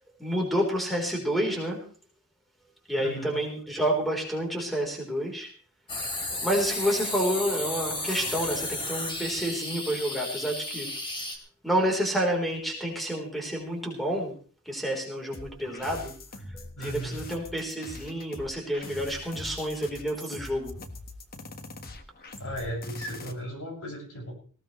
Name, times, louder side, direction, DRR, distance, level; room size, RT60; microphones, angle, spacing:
voice 1, 0.2-1.8 2.9-5.5 6.4-10.9 11.6-14.3 14.7-16.1 16.5-20.7, equal, ahead, 0 dB, 3.8 m, -29 dB
voice 2, 3.0-3.4 15.6-15.7 16.8-17.2 22.4-24.3, equal, 70° left, 0 dB, 6.6 m, -36 dB
sound 1, 5.9-11.4, left 2 dB, 20° left, 2.7 m, -33 dB
sound 2, 15.3-23.3, left 2 dB, 45° left, 1.5 m, -43 dB
19.0 x 17.0 x 3.2 m, 0.41 s
head